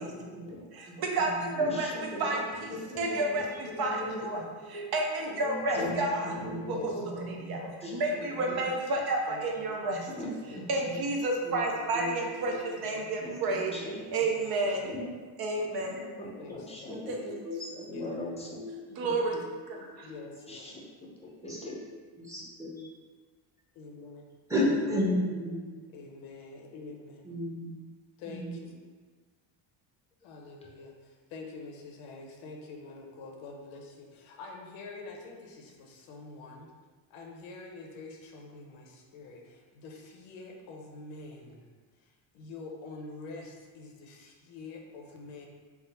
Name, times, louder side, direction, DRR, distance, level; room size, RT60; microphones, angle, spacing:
voice 1, 0.0-0.4 1.2-1.7 5.7-6.1 6.3-7.6 8.1-8.2 8.5-8.6 10.8-10.9 11.4-11.6 11.9-12.7 16.9-18.3 18.5-18.7 19.3-19.4 19.7-20.3 21.4-21.7 22.2-22.8 24.5-25.7 27.2-27.7 28.3-28.5, left 1 dB, 5° right, -6 dB, 0.9 m, -34 dB
voice 2, 0.7-2.7 3.0-4.4 4.7-6.8 7.3-7.6 7.9-10.1 10.7-13.7 14.1-14.9 15.4-16.0 17.1-17.2 19.0-19.4 19.7-20.1, right 2 dB, 50° right, 1 dB, 0.7 m, -31 dB
voice 3, 1.5-4.5 4.7-4.8 5.2-5.9 6.2-7.0 7.6-8.0 10.1-10.5 13.2-14.1 14.8-15.1 15.9-17.4 18.0-18.5 20.5-20.8 21.2-21.8, left 1 dB, 15° left, -3 dB, 0.6 m, -40 dB
voice 4, 6.6-7.4 9.3-10.7 12.8-13.4 14.1-14.9 16.4-17.0 17.9-18.1 20.0-20.8 23.7-24.3 24.6-25.2 25.9-27.4 28.2-28.7 30.2-36.7 37.1-41.7 42.3-45.5, left 3 dB, 85° left, 0 dB, 0.8 m, -46 dB
3.5 x 2.1 x 4.2 m, 1.4 s
cardioid pair, 115°, 48 cm